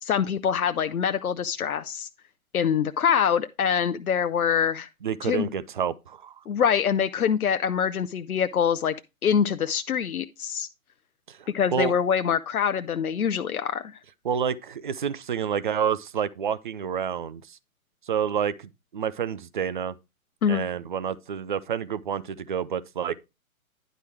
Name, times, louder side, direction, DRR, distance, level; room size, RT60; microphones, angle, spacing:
voice 1, 0.0-2.1 2.5-4.9 5.2-5.5 6.5-9.0 9.2-10.7 11.5-14.0 20.4-20.6, left 7 dB, 85° left, 0.6 m, -24 dB
voice 2, 5.0-6.3 11.3-11.9 14.2-17.6 18.1-19.9 20.5-23.2, right 8 dB, 40° right, 0.4 m, -29 dB
10.0 x 4.9 x 4.4 m
figure-of-eight pair, 140°, 42 cm